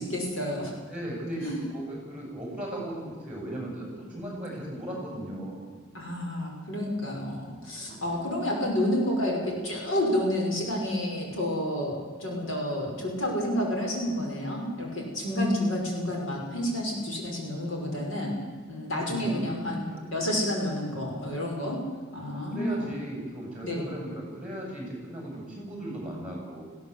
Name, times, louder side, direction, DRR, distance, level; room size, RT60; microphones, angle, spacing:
voice 1, 0.0-0.7 1.4-1.6 5.9-18.3 18.7-19.8 20.1-21.8 22.1-22.9 23.6-23.9, left 1 dB, 80° left, 0 dB, 5.9 m, -29 dB
voice 2, 0.9-5.6 7.8-8.2 19.0-19.5 19.8-20.0 22.5-26.6, right 1 dB, 5° right, -3 dB, 7.6 m, -37 dB
19.5 x 16.0 x 8.4 m, 1.6 s
head